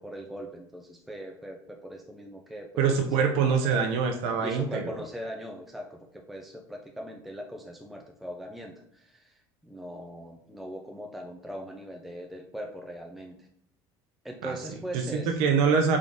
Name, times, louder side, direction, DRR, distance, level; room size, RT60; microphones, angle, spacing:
voice 1, 0.0-3.0 3.3-3.9 4.4-13.5 14.2-15.4, equal, ahead, 1 dB, 0.5 m, -40 dB
voice 2, 2.8-5.0 14.4-14.5 14.9-16.0, right 6 dB, 70° right, 4 dB, 0.6 m, -24 dB
3.7 x 3.7 x 3.5 m, 0.73 s
supercardioid pair, 105°, 10 cm